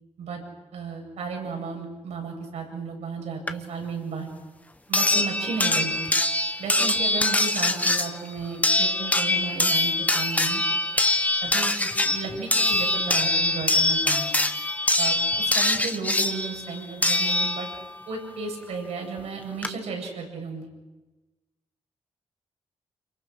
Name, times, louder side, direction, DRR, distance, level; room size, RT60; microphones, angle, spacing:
voice 1, 0.7-4.3 4.9-6.1 6.6-10.6 11.4-14.3 15.0-17.7 18.1-20.7, right 5 dB, 85° right, 2 dB, 7.7 m, -34 dB
sound 1, 3.5-3.6 4.9-17.9 19.2-19.3 19.6-19.7, left 2 dB, 15° left, 1.4 m, -23 dB
29.5 x 27.5 x 6.5 m, 1.1 s
cardioid pair, 105°, 11 cm